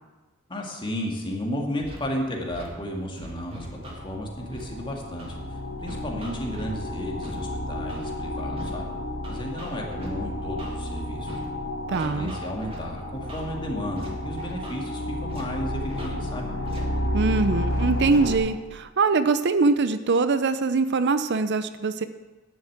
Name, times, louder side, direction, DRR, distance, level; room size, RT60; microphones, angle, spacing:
voice 1, 0.5-5.4 5.8-8.9 9.3-11.3 11.9-16.5, equal, 25° left, 0 dB, 2.3 m, -33 dB
Scratching (performance technique), 1.8-2.0 2.5-2.7 3.2-4.0 4.5-4.6 5.2-5.3 5.9-6.7 7.2-7.3 7.9-8.1 8.6-8.7 9.2-10.1 10.6-10.7 11.3-11.5 11.9-12.8 13.3-13.4 14.0-14.1 14.4-14.7 15.3-15.4 15.9-16.1 16.6-16.8 17.3-17.5 18.0-18.2, equal, 30° right, 2.4 m, -41 dB
sound 1, 3.3-18.4, left 1 dB, 85° left, 2.3 m, -32 dB
voice 2, 11.9-12.3 17.1-22.1, right 4 dB, 55° right, 11 dB, 0.6 m, -23 dB
11.0 x 7.2 x 8.7 m, 1.2 s
head